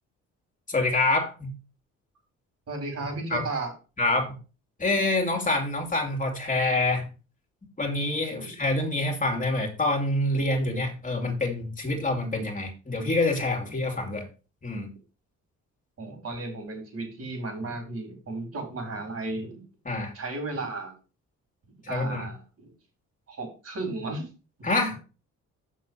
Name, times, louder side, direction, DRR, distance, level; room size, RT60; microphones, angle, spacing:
voice 1, 0.7-1.5 3.3-3.4 4.0-4.3 4.8-7.1 7.8-14.3 14.6-14.9 19.9-20.1 21.8-22.3 24.6-25.0, left 2 dB, 25° left, 2 dB, 2.4 m, -26 dB
voice 2, 2.7-3.7 8.3-8.5 16.0-19.7 20.1-20.9 21.8-22.7 23.3-24.3 24.9-25.0, right 2 dB, 55° right, 3 dB, 4.9 m, -34 dB
6.4 x 6.3 x 5.6 m, 0.33 s
cardioid pair, 90°, 30 cm